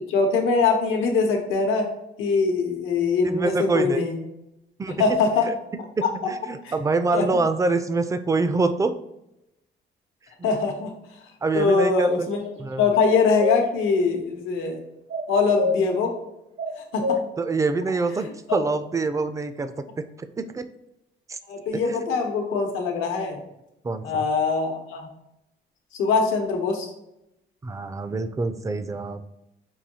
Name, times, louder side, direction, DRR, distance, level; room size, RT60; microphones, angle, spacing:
voice 1, 0.1-1.9 2.2-4.2 5.0-5.5 6.6-6.7 7.1-7.2 10.4-10.9 11.5-12.4 12.8-14.8 15.3-16.1 16.8-17.2 21.5-23.4 24.0-25.1 25.9-26.9, left 4 dB, 90° left, 2 dB, 0.9 m, -22 dB
voice 2, 3.2-4.0 4.8-5.5 6.0-8.9 10.4-10.5 11.4-12.3 12.6-12.8 17.4-20.7 21.3-21.4 21.7-22.0 23.8-24.3 27.6-29.2, right 3 dB, 15° right, 10 dB, 0.3 m, -26 dB
sound 1, 13.0-13.6 15.1-15.8 16.6-17.2, left 2 dB, 65° right, 0.8 m, -26 dB
5.5 x 2.6 x 2.8 m, 0.87 s
cardioid pair, 90°, 20 cm